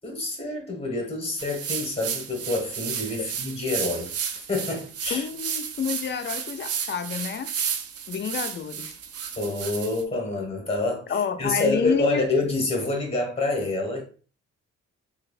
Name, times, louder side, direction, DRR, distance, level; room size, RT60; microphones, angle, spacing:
voice 1, 0.0-4.1 4.5-5.3 9.4-11.0 11.4-14.0, left 2 dB, 20° left, 1.2 m, -27 dB
sound 1, 1.4-10.0, right 7 dB, 55° right, 0.5 m, -33 dB
voice 2, 5.1-7.5 8.1-8.9 11.1-12.2, left 7 dB, 40° left, 0.4 m, -29 dB
3.2 x 2.7 x 2.4 m
cardioid pair, 90°, 30 cm